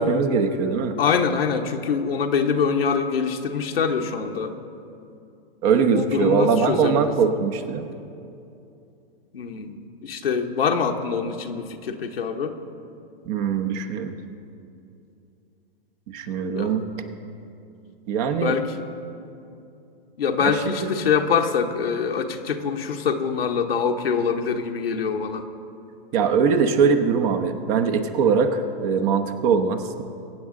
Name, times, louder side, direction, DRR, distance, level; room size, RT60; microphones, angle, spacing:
voice 1, 0.0-1.0 5.6-7.9 13.3-14.1 16.1-16.9 18.1-18.5 20.4-20.5 20.8-20.9 26.1-30.0, right 5 dB, 40° right, 6 dB, 1.0 m, -21 dB
voice 2, 1.0-4.5 5.9-7.4 9.3-9.8 10.0-12.5 16.5-16.7 18.4-18.9 20.2-25.4, left 6 dB, 85° left, 3 dB, 1.0 m, -24 dB
22.5 x 8.7 x 3.8 m, 2.6 s
hypercardioid pair, 125°, 29 cm